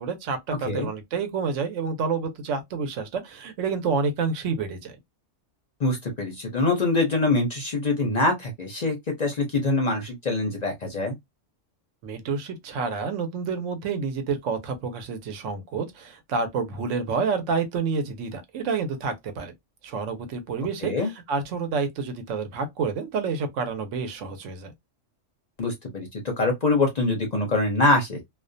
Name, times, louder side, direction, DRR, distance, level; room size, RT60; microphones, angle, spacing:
voice 1, 0.0-5.0 12.0-19.5 19.8-24.7, right 5 dB, 80° right, 1.0 m, -29 dB
voice 2, 5.8-11.2 20.8-21.1 25.6-28.2, left 2 dB, 50° left, 0.5 m, -24 dB
2.4 x 2.1 x 2.5 m
omnidirectional pair, 1.3 m